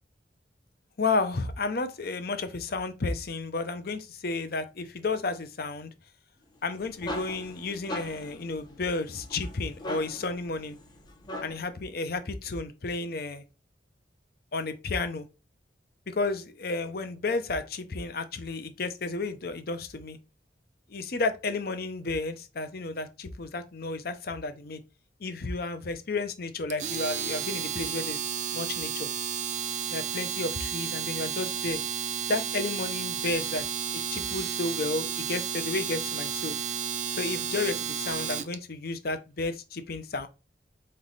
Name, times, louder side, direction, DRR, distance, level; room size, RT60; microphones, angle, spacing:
voice 1, 1.0-5.9 6.6-10.8 11.4-13.4 14.5-15.3 16.1-20.2 20.9-24.8 25.2-28.2 28.5-29.1 29.9-31.8 32.3-33.6 33.9-36.5 37.1-40.3, left 3 dB, 55° left, 0.7 m, -32 dB
sound 1, 6.6-11.8, left 1 dB, 25° left, 0.8 m, -40 dB
Domestic sounds home sounds, 26.7-38.5, right 8 dB, 40° right, 0.4 m, -32 dB
4.1 x 3.2 x 4.0 m
head